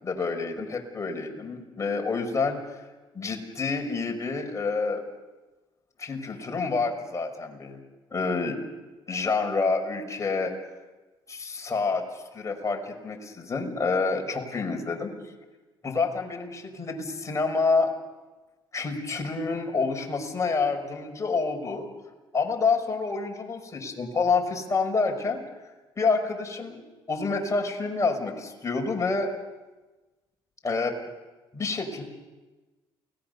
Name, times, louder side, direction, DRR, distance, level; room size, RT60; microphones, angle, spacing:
voice 1, 0.0-2.8 3.1-5.0 6.0-7.8 8.1-8.6 9.1-10.5 11.3-15.1 15.8-17.9 18.7-21.9 22.3-25.4 26.0-26.8 27.1-29.3 30.6-31.0 31.5-32.0, left 4 dB, 25° left, 3 dB, 5.7 m, -28 dB
29.0 x 19.0 x 6.9 m, 1.2 s
supercardioid pair, 75°, 11 cm